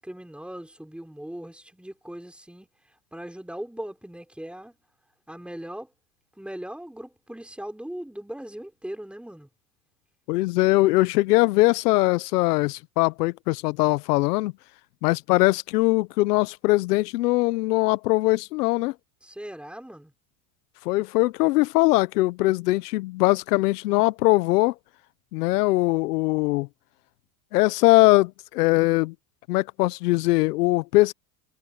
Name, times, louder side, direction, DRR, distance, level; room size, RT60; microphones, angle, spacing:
voice 1, 0.0-2.7 3.1-4.8 5.3-5.9 6.3-9.5 19.2-20.1, right 1 dB, ahead, 4.7 m, -39 dB
voice 2, 10.3-14.5 15.0-18.9 20.8-24.7 25.3-26.7 27.5-29.1 29.5-31.1, left 20 dB, 90° left, 0.8 m, -21 dB
supercardioid pair, 115°, 45 cm